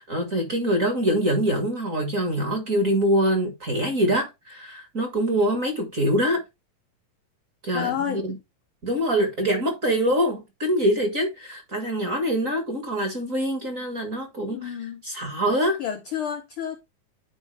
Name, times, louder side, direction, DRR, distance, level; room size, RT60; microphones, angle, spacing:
voice 1, 0.0-6.4 7.6-8.3 8.8-14.7 15.0-15.8, equal, 35° right, 1.5 m, -24 dB
voice 2, 7.7-8.2 14.5-15.0 15.8-16.8, left 9 dB, 70° left, 1.2 m, -30 dB
10.0 x 4.5 x 3.3 m
omnidirectional pair, 3.3 m